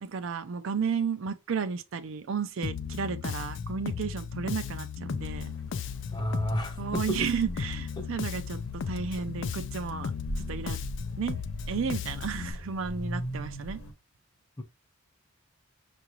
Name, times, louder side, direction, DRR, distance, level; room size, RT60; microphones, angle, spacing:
voice 1, 0.0-5.5 6.8-8.6 8.9-10.1 10.5-10.8 11.2-11.4 11.7-13.8, right 6 dB, 65° right, 0.4 m, -33 dB
Bass guitar, 2.6-12.5, left 6 dB, 55° left, 0.3 m, -35 dB
sound 1, 5.2-13.9, equal, 85° left, 1.0 m, -41 dB
voice 2, 6.1-7.3 8.0-8.1 14.6-14.7, equal, 20° left, 0.6 m, -31 dB
5.7 x 2.5 x 2.9 m
head